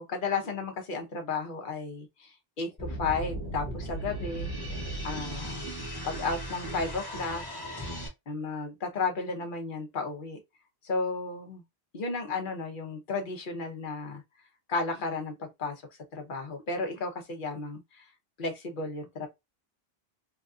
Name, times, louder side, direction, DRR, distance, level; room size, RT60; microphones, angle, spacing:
voice 1, 0.0-4.5 5.0-5.6 6.0-7.4 8.3-10.4 10.8-11.6 11.9-14.2 14.7-15.8 16.1-18.1 18.4-19.3, left 4 dB, 55° left, 1.0 m, -33 dB
sound 1, 2.8-8.1, right 1 dB, 25° left, 1.2 m, -36 dB
3.3 x 2.6 x 2.3 m
omnidirectional pair, 1.0 m